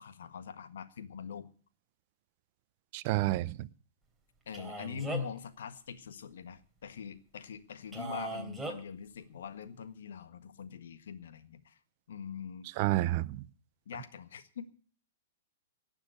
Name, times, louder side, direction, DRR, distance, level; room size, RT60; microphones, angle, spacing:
voice 1, 0.0-1.5 4.4-11.8 12.1-12.7 13.8-14.7, left 7 dB, 65° left, 1.6 m, -43 dB
voice 2, 2.9-3.7 12.8-13.4, right 17 dB, 45° right, 0.6 m, -29 dB
Male speech man speaking, 4.5-5.4 7.9-8.8, right 2 dB, 5° right, 3.3 m, -38 dB
18.5 x 7.3 x 8.2 m
hypercardioid pair, 110°, 0 cm